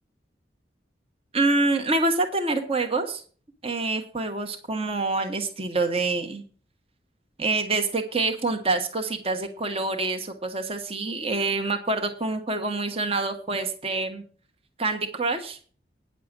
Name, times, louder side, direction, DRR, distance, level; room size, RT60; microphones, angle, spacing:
voice 1, 1.3-3.2 3.6-6.4 7.4-14.2 14.8-15.6, right 3 dB, 35° right, 5 dB, 1.3 m, -26 dB
9.9 x 6.7 x 7.4 m, 0.41 s
head